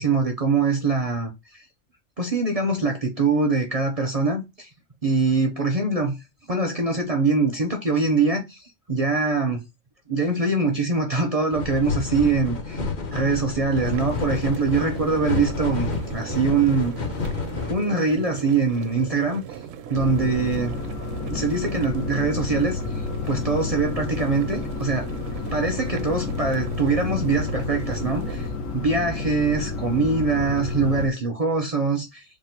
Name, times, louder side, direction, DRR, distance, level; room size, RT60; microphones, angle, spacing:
voice 1, 0.0-1.6 2.2-4.7 5.0-6.1 6.5-9.6 10.1-12.8 13.1-16.9 17.7-19.4 19.9-20.8 21.3-22.8 23.3-25.1 25.5-28.5 28.7-32.2, right 4 dB, 45° right, 0.5 m, -23 dB
sound 1, 11.5-17.7, left 4 dB, 45° left, 0.8 m, -29 dB
sound 2, 13.8-28.5, right 8 dB, 75° right, 0.9 m, -39 dB
sound 3, 19.9-31.1, left 4 dB, 80° left, 1.2 m, -30 dB
3.6 x 2.4 x 4.3 m
omnidirectional pair, 1.3 m